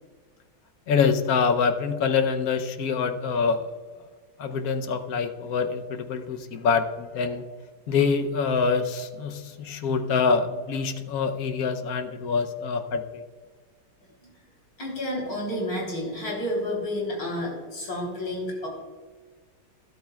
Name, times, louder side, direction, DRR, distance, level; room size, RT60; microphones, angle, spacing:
voice 1, 0.9-3.6 4.4-7.4 7.9-13.2, left 5 dB, 65° left, 7 dB, 1.0 m, -25 dB
voice 2, 14.8-18.7, left 1 dB, 80° left, -2 dB, 4.1 m, -30 dB
12.5 x 12.5 x 2.3 m, 1.5 s
omnidirectional pair, 2.0 m